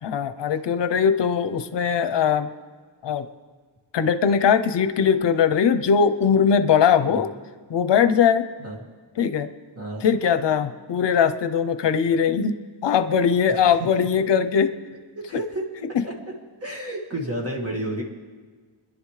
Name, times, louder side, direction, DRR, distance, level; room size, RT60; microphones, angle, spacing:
voice 1, 0.0-2.5 3.0-3.3 3.9-7.3 7.7-8.5 9.2-9.5 10.0-12.6 12.8-14.7 15.9-16.0, left 7 dB, 65° left, 11 dB, 0.8 m, -20 dB
voice 2, 15.2-15.6 16.0-16.1 16.6-18.0, right 1 dB, 30° right, -1 dB, 2.0 m, -30 dB
30.0 x 10.5 x 3.3 m, 1.5 s
wide cardioid pair, 140°, 46 cm